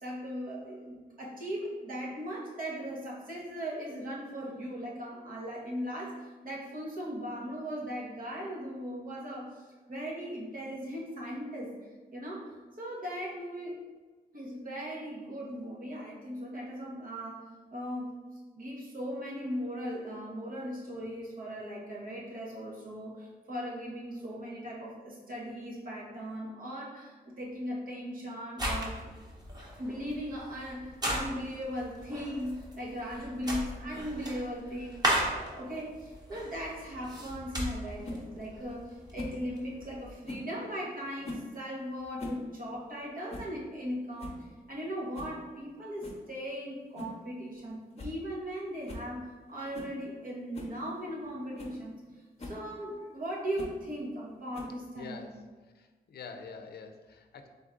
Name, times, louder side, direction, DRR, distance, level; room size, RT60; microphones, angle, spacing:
voice 1, 0.0-9.6 9.9-11.7 12.1-13.7 14.3-17.4 17.7-18.1 18.5-29.0 29.8-44.4 44.7-51.9 52.4-55.2, equal, 60° right, -4 dB, 1.3 m, -38 dB
sound 1, 28.6-40.1, equal, 25° right, 1.1 m, -37 dB
sound 2, 38.0-38.2 39.1-39.4 40.2-40.5 41.2-41.5 42.0-42.4 42.7-42.8 43.3-43.5 43.9-44.0 44.2-44.5 45.1-45.4 46.0-46.2 47.0-47.2 47.5-47.6 48.0-48.2 48.5-48.6 48.9-49.1 49.7-50.0 50.5-50.8 51.2-51.3 51.6-51.8 52.4-52.6 53.6-53.8 54.5-54.9, left 1 dB, 40° left, 0.8 m, -41 dB
voice 2, 54.9-55.4 55.7-57.5, left 5 dB, 80° left, 6 dB, 0.5 m, -46 dB
3.9 x 3.5 x 3.7 m, 1.3 s
cardioid pair, 80°, 17 cm